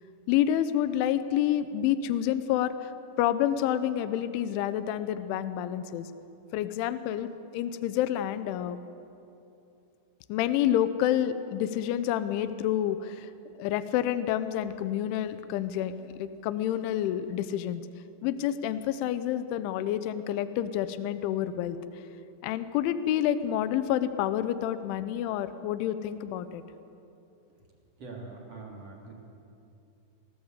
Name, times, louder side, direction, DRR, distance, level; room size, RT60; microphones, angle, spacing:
voice 1, 0.3-2.9 3.2-6.1 6.5-8.8 10.3-13.3 13.6-17.8 18.2-21.8 22.4-26.6, left 11 dB, 75° left, 12 dB, 3.1 m, -28 dB
voice 2, 28.0-29.1, right 3 dB, 35° right, -1 dB, 3.8 m, -43 dB
28.5 x 18.5 x 8.2 m, 2.7 s
omnidirectional pair, 5.9 m